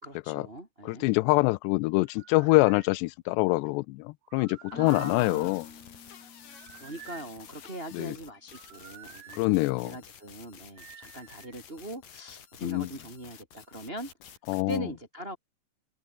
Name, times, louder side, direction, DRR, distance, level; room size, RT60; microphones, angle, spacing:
voice 1, 0.0-1.1 4.7-5.8 6.8-9.4 9.8-14.1 14.5-15.4, right 1 dB, 15° right, 5.0 m, -41 dB
voice 2, 0.8-5.6 7.9-8.2 9.3-9.9 12.6-12.9 14.5-14.9, left 23 dB, 85° left, 2.7 m, -25 dB
sound 1, 2.1-2.9 4.2-5.2 6.5-7.3 8.5-9.4 10.8-11.6, right 12 dB, 90° right, 4.2 m, -50 dB
Keyboard (musical), 4.7-8.3, left 6 dB, 70° left, 6.4 m, -52 dB
sound 2, 4.9-14.8, left 8 dB, 55° left, 4.2 m, -51 dB
open air
omnidirectional pair, 5.0 m